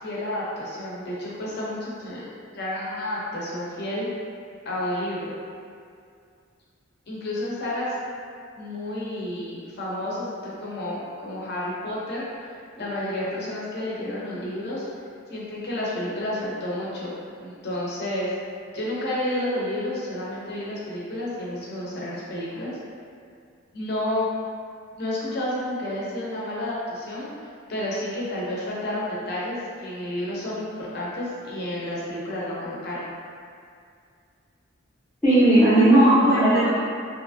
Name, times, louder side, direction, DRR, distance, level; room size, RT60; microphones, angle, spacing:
voice 1, 0.0-2.2 2.5-4.1 4.6-5.3 7.1-7.9 8.6-12.2 12.7-14.9 15.3-17.1 17.4-18.3 18.7-22.7 23.7-24.3 25.0-27.3 27.7-33.1, left 1 dB, 50° left, -6 dB, 0.6 m, -30 dB
voice 2, 35.2-36.7, right 1 dB, 5° left, -14 dB, 0.6 m, -16 dB
2.8 x 2.4 x 2.5 m, 2.3 s
head